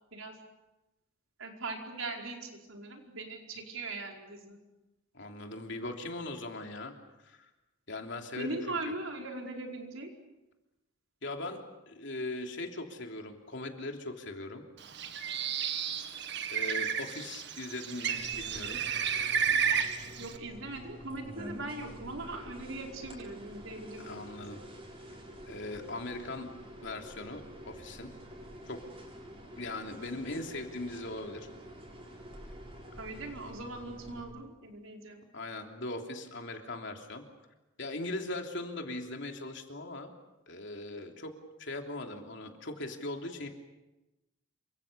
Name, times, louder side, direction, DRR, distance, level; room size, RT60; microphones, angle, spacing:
voice 1, 1.4-4.6 8.4-10.1 20.2-24.3 33.0-35.2, right 2 dB, 75° right, 2 dB, 4.9 m, -40 dB
voice 2, 5.1-6.9 7.2-7.5 7.9-8.6 8.8-8.9 11.2-14.6 16.5-18.8 24.0-24.6 25.5-26.5 26.8-28.1 28.7-28.8 29.6-31.5 35.3-37.2 37.8-40.1 40.5-41.3 41.6-43.5, left 2 dB, 60° left, 3 dB, 3.2 m, -40 dB
Bird, 14.8-20.4, right 7 dB, 60° right, 1.8 m, -32 dB
sound 1, 18.2-34.2, equal, 30° right, 8.0 m, -48 dB
28.0 x 25.0 x 6.9 m, 0.99 s
head